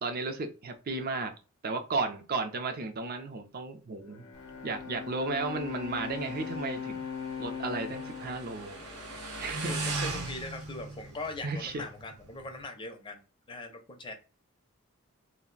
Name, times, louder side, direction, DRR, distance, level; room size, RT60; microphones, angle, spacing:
voice 1, 0.0-1.3 1.6-4.2 4.6-7.0 7.4-8.8 9.4-9.7 11.4-11.8, right 3 dB, 40° right, 7 dB, 0.4 m, -34 dB
Bowed string instrument, 4.0-9.5, left 6 dB, 85° left, 0.6 m, -40 dB
Motorcycle, 4.3-12.6, right 2 dB, 85° right, 0.8 m, -40 dB
voice 2, 8.8-14.1, left 2 dB, 20° left, 5 dB, 0.4 m, -42 dB
2.4 x 2.1 x 3.7 m, 0.34 s
head